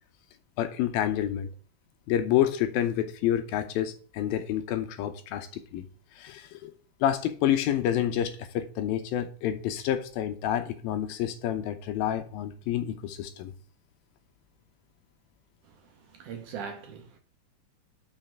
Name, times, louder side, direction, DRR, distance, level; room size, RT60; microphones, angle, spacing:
voice 1, 0.6-1.5 2.1-5.9 6.2-6.7 7.0-13.5, left 11 dB, 80° left, 2.6 m, -28 dB
voice 2, 15.6-17.2, right 6 dB, 65° right, 2.3 m, -41 dB
6.5 x 5.7 x 7.1 m
omnidirectional pair, 4.4 m